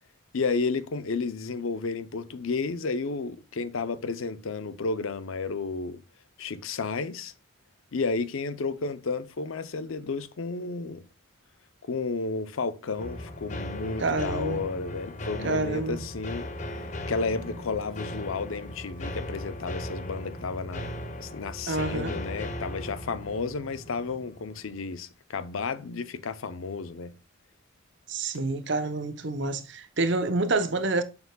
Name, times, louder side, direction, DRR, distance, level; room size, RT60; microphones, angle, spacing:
voice 1, 0.3-6.0 6.4-7.3 7.9-11.0 11.9-20.9 21.2-27.1 28.3-28.5, left 4 dB, 75° left, 0.6 m, -32 dB
sound 1, 13.0-24.9, left 1 dB, 35° left, 0.6 m, -37 dB
voice 2, 14.0-14.6 15.4-16.0 21.7-22.1 28.1-31.0, right 3 dB, 55° right, 0.7 m, -28 dB
6.8 x 6.7 x 2.2 m
head